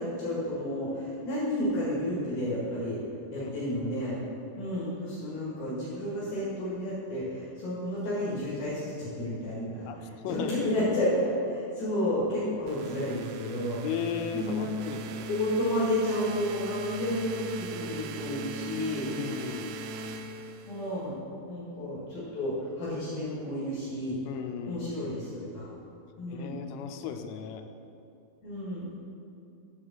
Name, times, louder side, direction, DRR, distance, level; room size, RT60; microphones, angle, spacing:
voice 1, 0.0-3.0 3.3-4.2 4.6-13.8 14.3-14.7 15.3-19.1 20.6-21.2 21.5-24.2 24.7-25.7 26.2-26.6 28.4-29.0, left 1 dB, 60° left, -7 dB, 3.1 m, -31 dB
voice 2, 9.9-10.5 13.8-15.3 19.2-19.7 24.3-25.1 26.3-27.6, left 8 dB, 85° left, 7 dB, 3.1 m, -36 dB
sound 1, 12.7-21.0, right 3 dB, 90° right, 3.1 m, -40 dB
7.3 x 5.0 x 7.2 m, 2.6 s
omnidirectional pair, 5.6 m